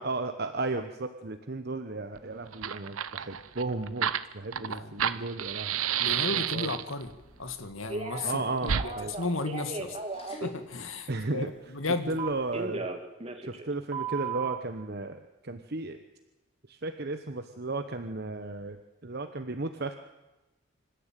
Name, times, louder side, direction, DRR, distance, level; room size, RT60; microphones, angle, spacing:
voice 1, 0.0-4.1 4.3-5.8 6.3-6.8 8.2-9.1 11.1-11.5 12.1-12.9 13.4-16.0 16.7-19.9, right 2 dB, 50° right, 8 dB, 1.1 m, -34 dB
Fire, 2.1-2.2 2.5-7.0 8.6-8.9, right 9 dB, 90° right, 0.9 m, -30 dB
voice 2, 4.6-5.2 6.0-7.1 7.4-10.0 10.4-12.2, left 3 dB, 75° left, 9 dB, 2.1 m, -34 dB
sound 1, 7.0-12.7, left 1 dB, 30° left, 4.1 m, -56 dB
Telephone, 7.9-8.4 8.7-10.5 12.2-13.7 13.9-14.6, right 4 dB, 30° right, 1.9 m, -35 dB
26.5 x 13.5 x 9.2 m, 1.1 s
head